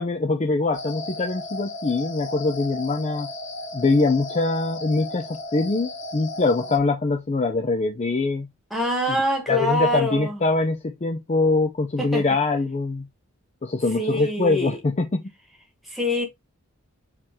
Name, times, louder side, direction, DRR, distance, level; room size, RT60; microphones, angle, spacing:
voice 1, 0.0-3.3 3.7-8.5 9.1-9.2 9.5-13.0 13.6-15.2, left 3 dB, 30° left, 0.4 m, -23 dB
sound 1, 0.7-6.8, left 2 dB, 55° left, 1.0 m, -35 dB
voice 2, 8.7-10.4 12.0-12.2 14.0-14.8 15.9-16.3, left 1 dB, ahead, 1.3 m, -24 dB
4.8 x 3.0 x 3.5 m
head